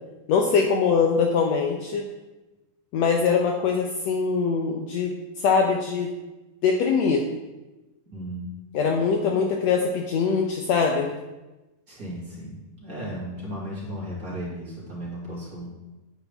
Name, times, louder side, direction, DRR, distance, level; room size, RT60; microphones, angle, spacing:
voice 1, 0.3-2.0 2.9-6.1 6.6-7.2 8.7-11.1, left 5 dB, 70° left, 2 dB, 1.7 m, -22 dB
voice 2, 8.1-8.5 9.3-9.5 11.9-15.7, equal, 30° right, -7 dB, 2.9 m, -35 dB
9.7 x 8.8 x 3.5 m, 1.1 s
omnidirectional pair, 3.6 m